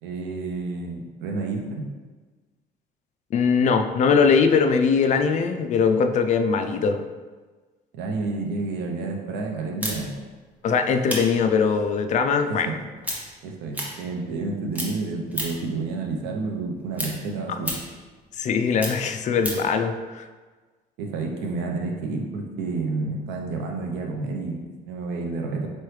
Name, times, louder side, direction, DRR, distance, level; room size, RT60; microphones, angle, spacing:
voice 1, 0.0-1.9 7.9-10.1 12.5-12.8 13.4-17.8 21.0-25.7, right 3 dB, 85° right, 2 dB, 0.7 m, -30 dB
voice 2, 3.3-7.0 10.6-12.7 18.4-20.3, left 5 dB, 45° left, 7 dB, 0.4 m, -21 dB
sound 1, 9.8-14.5 14.7-15.8 16.1-19.7, equal, 10° right, 0.9 m, -33 dB
4.4 x 3.1 x 3.2 m, 1.3 s
cardioid pair, 110°, 17 cm